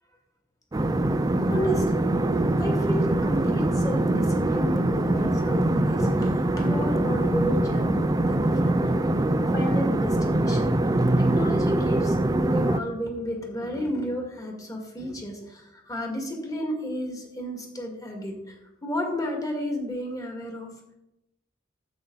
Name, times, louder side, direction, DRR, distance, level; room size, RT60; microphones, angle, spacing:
sound 1, 0.7-12.8, right 1 dB, 20° right, 0.5 m, -23 dB
voice 1, 1.4-2.1 2.6-9.0 9.5-10.7 11.2-20.7, equal, 20° left, 1 dB, 2.0 m, -32 dB
12.5 x 8.2 x 4.0 m, 0.89 s
head